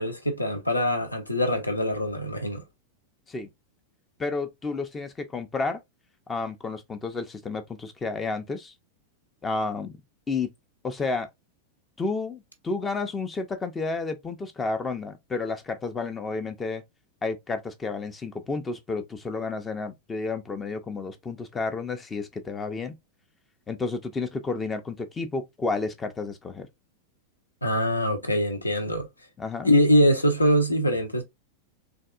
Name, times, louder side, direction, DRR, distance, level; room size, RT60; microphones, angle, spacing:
voice 1, 0.0-2.6 27.6-29.1 29.6-31.2, equal, 85° left, 0.7 m, -23 dB
voice 2, 4.2-5.8 6.3-8.7 9.4-9.9 10.3-10.5 10.8-11.3 12.0-16.8 17.2-22.9 23.7-26.7 29.4-29.7, left 3 dB, 15° left, 0.4 m, -31 dB
3.3 x 2.3 x 2.3 m
figure-of-eight pair, 90°, 0 cm